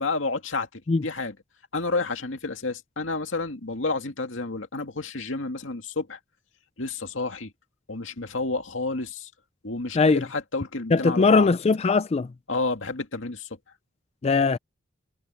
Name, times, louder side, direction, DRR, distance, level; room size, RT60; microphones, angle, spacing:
voice 1, 0.0-1.3 1.7-6.2 6.8-7.5 7.9-9.3 9.6-11.5 12.5-13.5, left 3 dB, 90° left, 2.3 m, -30 dB
voice 2, 10.9-12.3 14.2-14.6, left 4 dB, 35° left, 0.4 m, -20 dB
head